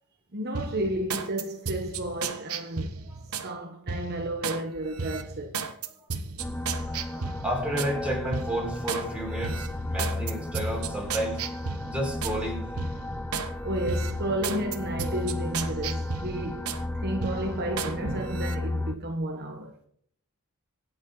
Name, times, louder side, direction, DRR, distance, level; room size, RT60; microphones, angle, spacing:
voice 1, 0.3-3.0 3.3-5.6 13.6-19.7, right 1 dB, 50° right, 1.3 m, -32 dB
sound 1, 0.5-3.5 3.9-4.6 5.0-7.9 8.3-9.1 9.4-12.4 12.8-13.5 13.9-16.8 17.2-17.9 18.3-18.6, right 5 dB, 80° right, 1.3 m, -34 dB
sound 2, 6.4-19.0, left 2 dB, 10° left, 0.6 m, -34 dB
voice 2, 6.6-11.4 11.8-12.7, right 1 dB, 5° right, 5.4 m, -32 dB
25.5 x 8.6 x 4.0 m
head